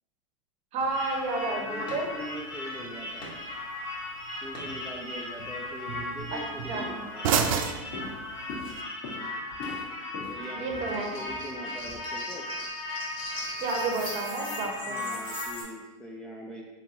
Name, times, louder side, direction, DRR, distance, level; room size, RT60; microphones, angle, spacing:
voice 1, 0.7-2.1 6.3-6.4 6.7-6.9 10.5-11.1 13.6-15.0, right 3 dB, 40° right, 0 dB, 0.9 m, -31 dB
sound 1, 0.8-8.8, right 7 dB, 80° right, 0.4 m, -35 dB
sound 2, 0.9-15.6, left 2 dB, 30° left, 1.4 m, -37 dB
voice 2, 1.5-3.3 4.4-7.3 10.3-12.5 14.9-16.6, equal, 5° left, -4 dB, 0.5 m, -41 dB
Walk footsteps, 6.2-6.4 6.7-7.1 7.4-12.0, left 2 dB, 55° left, 1.5 m, -42 dB
3.9 x 3.4 x 2.9 m, 1.2 s
hypercardioid pair, 105°, 17 cm